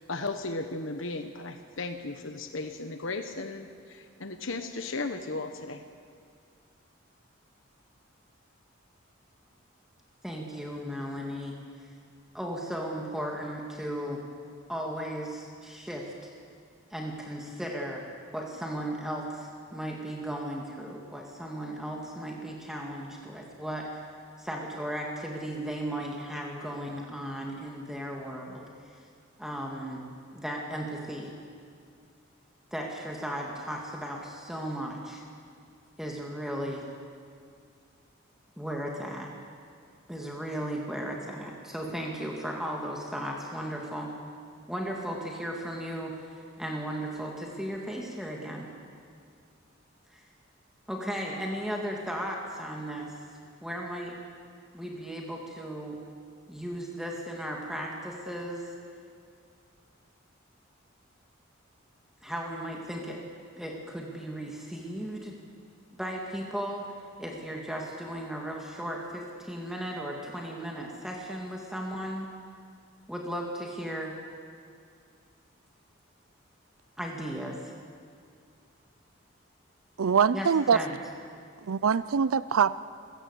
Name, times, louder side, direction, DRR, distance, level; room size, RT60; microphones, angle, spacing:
voice 1, 0.0-5.8, left 3 dB, 70° left, 7 dB, 1.2 m, -35 dB
voice 2, 10.2-11.9 12.3-14.2 14.7-16.1 16.9-18.0 18.3-23.9 24.4-28.7 29.0-29.1 29.4-30.1 30.3-31.3 32.7-35.2 36.0-36.9 38.6-39.3 40.1-44.1 44.7-48.7 50.1-50.2 50.9-53.2 53.6-54.2 54.7-56.0 56.5-58.7 62.2-63.2 63.6-65.4 66.0-66.9 67.2-72.3 73.1-74.1 77.0-77.7 80.3-81.0, equal, ahead, -1 dB, 2.1 m, -36 dB
voice 3, 80.0-80.8 81.7-82.8, right 6 dB, 85° right, 17 dB, 0.5 m, -23 dB
27.0 x 16.0 x 8.3 m, 2.3 s
head